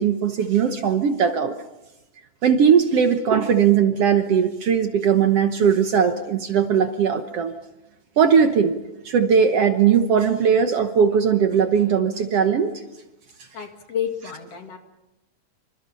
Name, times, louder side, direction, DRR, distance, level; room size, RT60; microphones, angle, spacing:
voice 1, 0.0-1.5 2.4-7.5 8.2-8.8 9.0-12.7, right 7 dB, 60° right, 7 dB, 1.9 m, -19 dB
voice 2, 13.5-14.8, left 8 dB, 55° left, 4 dB, 3.1 m, -30 dB
27.5 x 25.5 x 5.6 m, 0.96 s
omnidirectional pair, 3.5 m